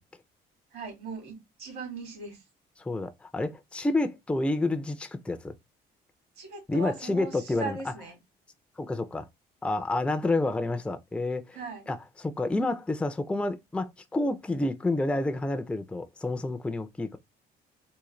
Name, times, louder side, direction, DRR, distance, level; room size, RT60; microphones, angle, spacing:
voice 1, 0.7-2.4 6.4-8.2 11.5-11.9, right 4 dB, 70° right, 2.1 m, -39 dB
voice 2, 2.8-5.5 6.7-7.8 8.8-9.3 9.6-11.6 11.9-17.2, left 2 dB, 5° left, 0.4 m, -29 dB
3.7 x 2.6 x 3.1 m
cardioid pair, 110°, 17 cm